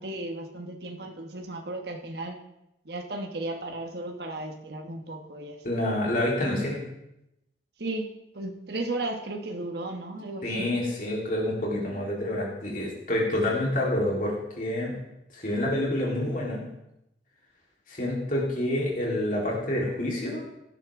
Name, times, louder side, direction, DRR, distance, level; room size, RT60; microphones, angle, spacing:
voice 1, 0.0-2.4 2.8-5.6 7.8-10.7, right 2 dB, 60° right, 3 dB, 1.3 m, -35 dB
voice 2, 5.6-6.8 10.4-14.9 15.3-16.7 17.9-20.4, left 1 dB, 45° left, -3 dB, 3.6 m, -28 dB
17.0 x 10.0 x 3.7 m, 0.86 s
head